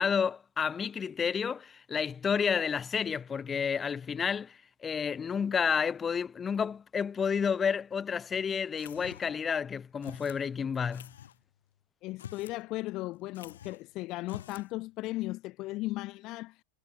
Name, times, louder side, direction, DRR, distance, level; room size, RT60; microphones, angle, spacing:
voice 1, 0.0-11.1, left 6 dB, 20° left, 1.1 m, -30 dB
sound 1, 8.8-9.4 10.0-10.4 10.9-11.4 12.1-12.6 12.9-13.0 13.3-13.9 14.2-14.7, left 10 dB, 60° left, 1.9 m, -47 dB
voice 2, 12.0-16.6, left 19 dB, 40° left, 0.8 m, -36 dB
figure-of-eight pair, 90°, 0 cm